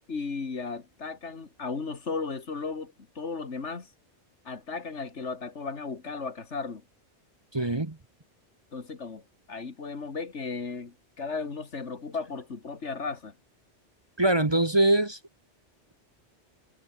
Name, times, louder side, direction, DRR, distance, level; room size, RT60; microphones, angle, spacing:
voice 1, 0.0-3.9 4.5-6.8 8.7-9.2 9.5-13.3, left 4 dB, 80° left, 2.4 m, -35 dB
voice 2, 7.5-8.0 14.2-15.2, right 1 dB, 25° right, 1.3 m, -23 dB
omnidirectional pair, 1.2 m